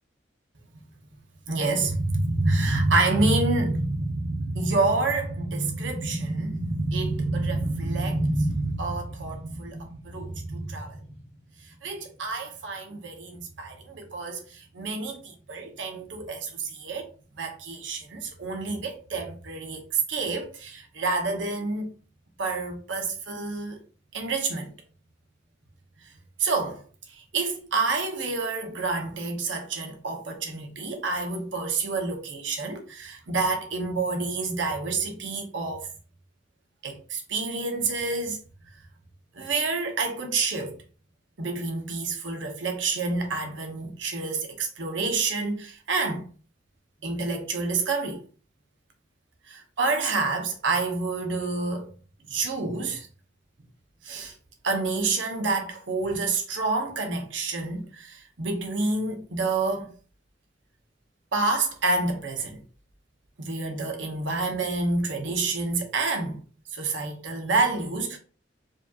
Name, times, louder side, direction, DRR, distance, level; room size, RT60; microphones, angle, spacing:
voice 1, 1.5-11.0 11.6-17.1 17.4-21.9 22.4-23.0 23.4-23.8 24.1-24.7 26.4-26.8 27.1-35.9 36.8-38.4 39.3-40.8 41.4-46.3 47.0-48.3 49.5-51.9 52.3-53.1 54.0-54.3 54.6-59.9 61.3-62.6 63.4-66.4 66.7-68.2, right 3 dB, 70° right, 0.9 m, -28 dB
4.9 x 2.8 x 2.4 m
head